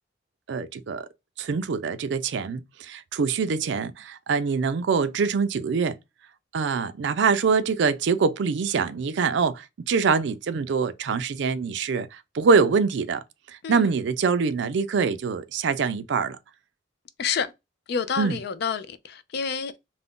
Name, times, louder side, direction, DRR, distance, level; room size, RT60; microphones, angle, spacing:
voice 1, 0.5-1.1 1.4-6.0 6.5-13.2 13.5-16.4 18.2-18.4, right 5 dB, 60° right, 0.4 m, -24 dB
voice 2, 17.9-19.8, left 6 dB, 55° left, 0.4 m, -28 dB
2.4 x 2.1 x 3.5 m
head